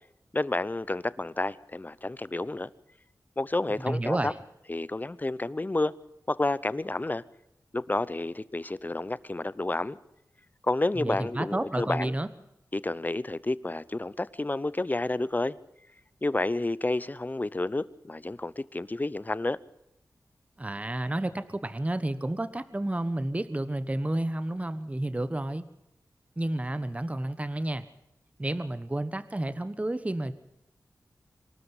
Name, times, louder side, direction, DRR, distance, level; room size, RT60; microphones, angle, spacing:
voice 1, 0.3-2.7 3.4-4.3 4.7-5.9 6.3-7.2 7.7-10.0 10.6-12.1 12.7-15.6 16.2-19.6, left 2 dB, 25° left, 0.8 m, -30 dB
voice 2, 3.9-4.3 11.0-12.3 20.6-25.7 26.4-27.8 28.4-30.3, right 1 dB, 20° right, 1.2 m, -31 dB
25.0 x 13.0 x 8.0 m
cardioid pair, 60°, 7 cm